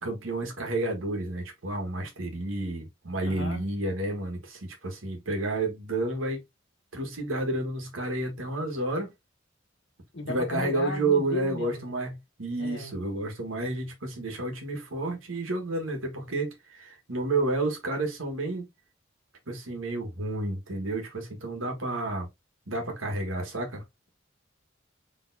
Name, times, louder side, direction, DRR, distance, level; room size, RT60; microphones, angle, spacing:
voice 1, 0.0-6.4 6.9-9.1 10.3-18.7 19.5-22.3 22.7-23.8, right 2 dB, 90° right, 1.5 m, -30 dB
voice 2, 3.2-3.6 10.1-11.9 12.6-13.0, left 2 dB, 60° left, 1.1 m, -35 dB
4.2 x 3.4 x 2.6 m
head